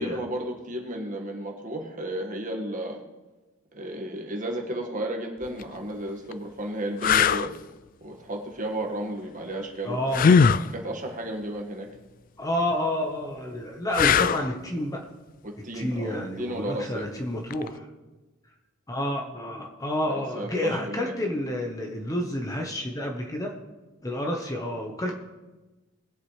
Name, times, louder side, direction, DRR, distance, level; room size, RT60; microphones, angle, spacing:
voice 1, 0.0-3.0 3.7-7.6 8.0-10.3 10.6-11.9 15.4-17.1 20.1-21.1, right 1 dB, 40° right, 1 dB, 1.9 m, -33 dB
sound 1, 5.4-5.6 6.3-6.4 7.0-7.5 10.1-10.7 13.9-14.5 17.5-17.7, left 6 dB, 40° left, 0.3 m, -19 dB
voice 2, 9.8-10.4 12.4-15.0 15.7-17.9 18.9-23.6 24.0-25.1, left 1 dB, 15° left, 1 dB, 1.2 m, -29 dB
21.5 x 8.4 x 3.3 m, 1.2 s
head